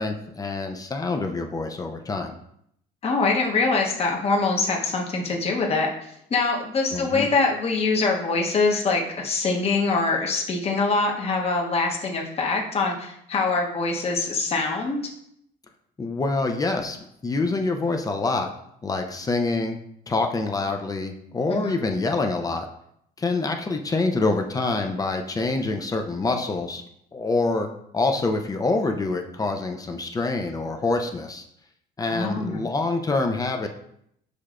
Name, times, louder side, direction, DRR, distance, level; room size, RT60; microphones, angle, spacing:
voice 1, 0.0-2.4 6.9-7.3 16.0-17.0 17.2-18.5 18.8-19.8 20.1-22.7 23.2-26.8 27.1-31.4 32.0-33.7, left 3 dB, 20° left, 4 dB, 0.4 m, -26 dB
voice 2, 3.0-5.9 6.3-15.0 21.5-21.8 32.1-32.6, left 3 dB, 35° left, 0 dB, 0.9 m, -24 dB
6.6 x 3.1 x 2.4 m, 0.72 s
cardioid pair, 110°, 17 cm